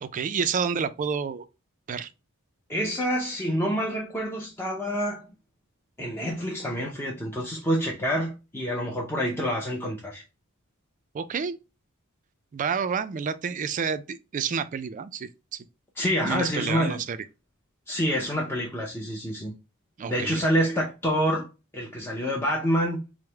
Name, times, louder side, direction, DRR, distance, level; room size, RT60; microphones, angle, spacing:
voice 1, 0.0-1.5 1.9-2.1 11.1-11.6 12.5-15.6 16.2-17.2 20.0-20.4, right 6 dB, 35° right, 0.3 m, -29 dB
voice 2, 2.7-5.3 6.0-10.2 16.0-17.0 17.9-19.5 20.1-21.5 21.7-23.0, equal, 10° left, 0.6 m, -27 dB
4.7 x 2.1 x 3.2 m
head